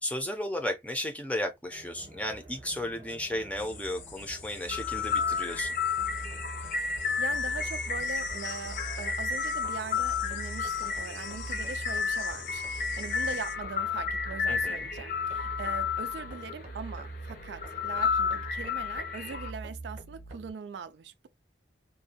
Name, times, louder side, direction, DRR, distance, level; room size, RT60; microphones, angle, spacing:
voice 1, 0.0-5.7 14.5-14.9, left 1 dB, 10° left, 0.5 m, -34 dB
sound 1, 1.7-20.5, right 2 dB, 35° right, 0.8 m, -44 dB
sound 2, 3.6-13.6, left 7 dB, 85° left, 0.6 m, -46 dB
sound 3, 4.6-19.5, left 6 dB, 50° left, 0.7 m, -32 dB
voice 2, 7.1-21.3, right 5 dB, 70° right, 0.4 m, -41 dB
2.6 x 2.1 x 2.8 m
head